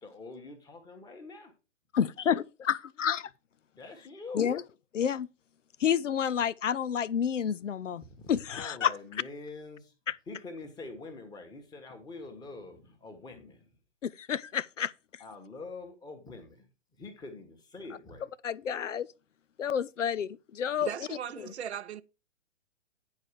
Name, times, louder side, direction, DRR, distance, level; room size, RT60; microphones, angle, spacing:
voice 1, 0.0-1.5 3.7-4.5 8.2-9.9 10.3-13.7 15.2-16.7 17.0-18.2, left 3 dB, 10° left, 1.4 m, -45 dB
voice 2, 1.9-3.3 4.3-4.6 4.9-5.3 5.8-8.0 8.3-8.9 10.1-10.2 14.0-14.9 18.4-19.1 19.6-20.9, left 8 dB, 85° left, 0.5 m, -29 dB
voice 3, 20.8-22.0, right 9 dB, 65° right, 0.6 m, -37 dB
9.6 x 4.8 x 4.7 m
figure-of-eight pair, 125°, 36 cm